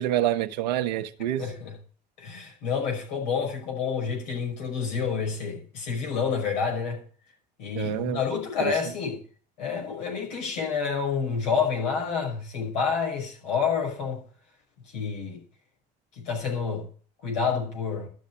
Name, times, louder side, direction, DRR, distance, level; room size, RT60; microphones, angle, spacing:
voice 1, 0.0-1.4 7.7-8.2 8.6-8.7, right 12 dB, 90° right, 1.0 m, -27 dB
voice 2, 1.4-1.8 2.2-7.0 7.6-9.2 9.6-14.2 14.9-15.4 16.2-16.8 17.2-18.1, left 6 dB, 90° left, 5.8 m, -28 dB
12.5 x 6.4 x 8.4 m
hypercardioid pair, 70°, 21 cm